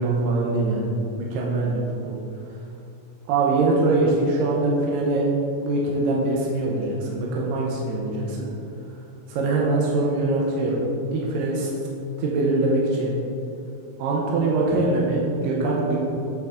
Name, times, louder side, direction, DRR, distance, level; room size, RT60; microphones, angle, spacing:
voice 1, 0.0-2.2 3.3-5.3 5.6-8.5 9.3-10.8 11.1-11.7 12.2-13.1 14.0-16.0, right 2 dB, 75° right, -3 dB, 2.3 m, -23 dB
9.1 x 3.8 x 3.5 m, 2.7 s
omnidirectional pair, 4.2 m